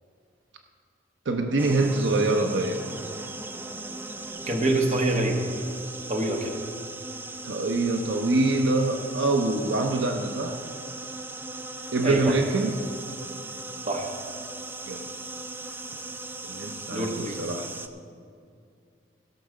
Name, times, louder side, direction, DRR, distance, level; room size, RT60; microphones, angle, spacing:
voice 1, 1.3-2.8 7.4-10.6 11.9-12.7 14.9-15.0 16.4-17.7, right 2 dB, 80° right, 5 dB, 0.7 m, -25 dB
sound 1, 1.6-17.9, right 2 dB, 10° right, 0.4 m, -38 dB
voice 2, 4.5-5.5 6.1-6.6 12.0-12.3 13.8-14.1 16.9-17.4, right 2 dB, 35° right, 1 dB, 1.4 m, -26 dB
16.0 x 6.0 x 6.5 m, 2.4 s
head